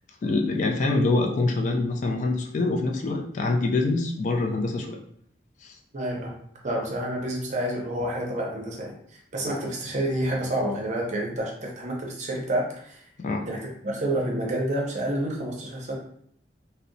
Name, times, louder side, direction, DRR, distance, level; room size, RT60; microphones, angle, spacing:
voice 1, 0.2-5.0 5.6-5.7 13.2-13.4, left 2 dB, 40° left, 2 dB, 0.3 m, -25 dB
voice 2, 5.9-13.0 13.4-15.9, right 1 dB, 40° right, -1 dB, 0.6 m, -29 dB
2.7 x 2.0 x 2.5 m, 0.66 s
head